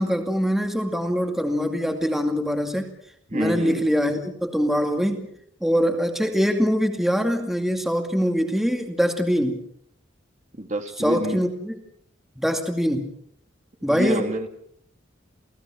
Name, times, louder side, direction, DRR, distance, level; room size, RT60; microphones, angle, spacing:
voice 1, 0.0-2.9 3.3-5.3 5.6-9.6 11.0-11.8 12.4-13.1 13.8-14.5, equal, ahead, 4 dB, 2.3 m, -23 dB
voice 2, 3.3-3.8 10.6-11.4 13.8-14.5, right 1 dB, 40° right, 5 dB, 2.3 m, -27 dB
29.5 x 18.5 x 6.2 m, 0.70 s
head